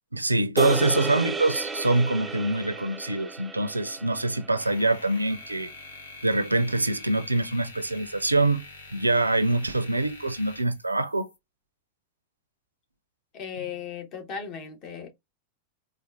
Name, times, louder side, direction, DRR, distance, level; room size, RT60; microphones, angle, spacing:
voice 1, 0.1-5.7 6.2-8.6 8.9-11.3, right 2 dB, 85° right, 0.4 m, -25 dB
sound 1, 0.6-5.0, right 4 dB, 10° right, 0.4 m, -32 dB
sound 2, 4.6-11.4, left 3 dB, 70° left, 0.9 m, -45 dB
voice 2, 13.3-15.1, left 7 dB, 35° left, 1.2 m, -36 dB
4.3 x 2.4 x 2.4 m
figure-of-eight pair, 90°, 0 cm